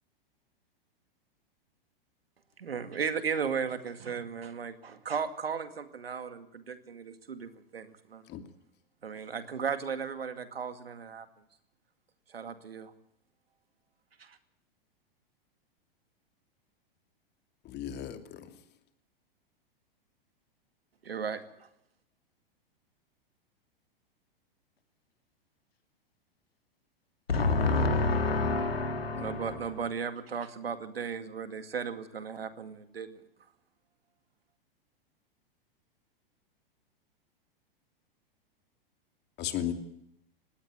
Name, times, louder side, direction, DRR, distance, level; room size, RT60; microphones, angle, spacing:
voice 1, 2.6-8.2 9.0-11.3 12.3-12.9 14.2-14.4 21.0-21.7 29.2-33.2, right 6 dB, 85° right, 2.2 m, -36 dB
voice 2, 17.6-18.5 39.4-39.7, left 11 dB, 35° left, 2.8 m, -35 dB
voice 3, 27.3-29.8, left 3 dB, 85° left, 3.4 m, -28 dB
20.0 x 17.0 x 9.4 m
hypercardioid pair, 105°, 29 cm